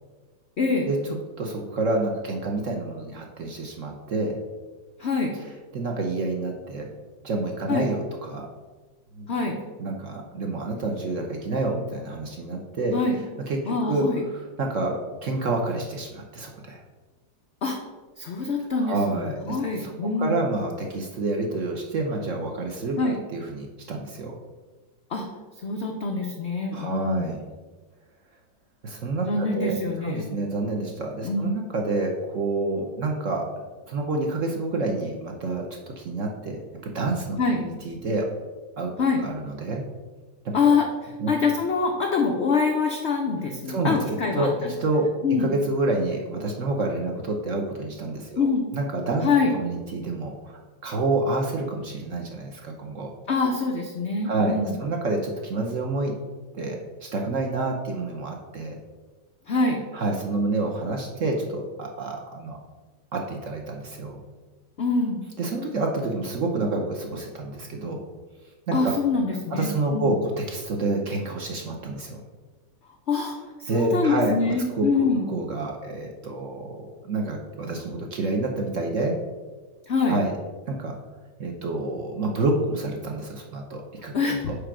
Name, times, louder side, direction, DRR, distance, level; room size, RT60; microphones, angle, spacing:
voice 1, 0.6-0.9 5.0-5.3 7.7-7.9 9.3-9.6 12.9-13.2 13.7-14.2 17.6-17.8 18.2-20.4 23.0-23.2 25.1-25.3 25.6-27.3 29.3-30.3 31.2-31.5 37.4-37.6 39.0-39.2 40.5-40.9 41.3-44.7 45.2-45.5 48.4-48.6 49.2-49.5 53.3-54.8 59.5-59.8 64.8-65.2 68.7-70.1 73.1-73.3 73.6-75.3 79.9-80.2 84.1-84.5, left 4 dB, 80° left, 2 dB, 0.6 m, -24 dB
voice 2, 1.4-4.4 5.7-6.9 7.2-8.5 9.2-9.3 9.8-12.9 13.5-16.8 18.8-19.9 20.2-23.0 23.3-24.3 26.7-27.5 28.8-29.7 30.0-33.5 33.9-35.7 36.0-38.3 38.8-38.9 39.2-39.9 40.4-40.8 41.2-41.3 43.7-44.5 44.8-45.1 45.4-49.2 49.5-53.1 54.2-56.1 56.5-58.8 59.9-62.6 63.1-64.2 65.4-68.0 68.7-69.0 69.5-72.2 73.7-74.9 75.3-79.2 80.1-80.3 80.7-80.9 81.4-84.6, right 2 dB, 55° right, 1 dB, 0.9 m, -28 dB
5.1 x 4.5 x 6.0 m, 1.3 s
omnidirectional pair, 2.0 m